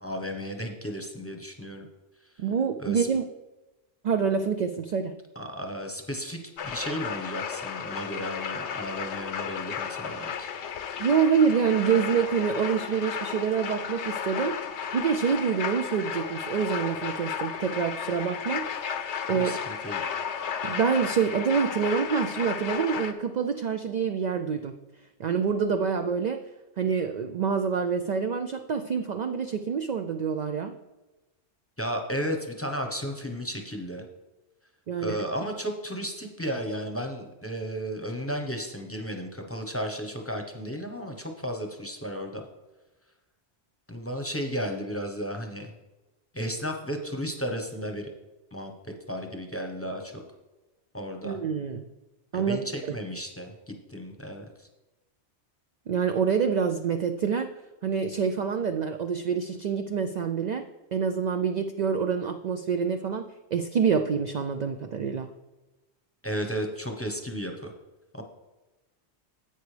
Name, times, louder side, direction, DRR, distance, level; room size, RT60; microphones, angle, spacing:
voice 1, 0.0-1.9 2.8-3.1 5.4-10.5 19.3-20.0 31.8-34.0 35.0-42.4 43.9-45.7 46.3-48.1 48.5-50.2 50.9-51.4 52.3-54.7 66.2-67.7 68.1-68.2, equal, 15° left, 3 dB, 0.8 m, -34 dB
voice 2, 2.4-3.3 4.0-5.1 11.0-14.6 14.9-18.6 19.3-19.6 20.6-24.8 25.2-26.4 26.8-30.7 34.9-35.2 51.2-51.9 52.3-52.9 55.9-57.5 57.8-60.6 60.9-65.3, right 6 dB, 60° right, 7 dB, 0.4 m, -26 dB
sound 1, 6.6-23.1, left 7 dB, 75° left, 1.0 m, -33 dB
11.0 x 8.2 x 3.3 m, 1.1 s
omnidirectional pair, 1.2 m